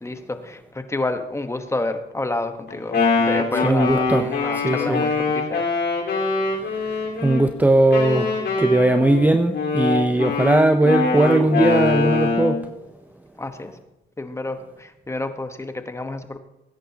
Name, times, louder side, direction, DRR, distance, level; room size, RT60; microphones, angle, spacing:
voice 1, 0.0-5.6 13.4-13.7 14.2-16.4, left 2 dB, 15° left, 8 dB, 1.1 m, -29 dB
Wind instrument woodwind instrument, 2.7-7.4 7.9-12.6, left 4 dB, 60° left, 4.2 m, -23 dB
voice 2, 3.6-5.1 7.2-12.6, right 1 dB, 10° right, 8 dB, 0.6 m, -19 dB
20.0 x 9.9 x 2.9 m, 0.96 s
cardioid pair, 90°, 20 cm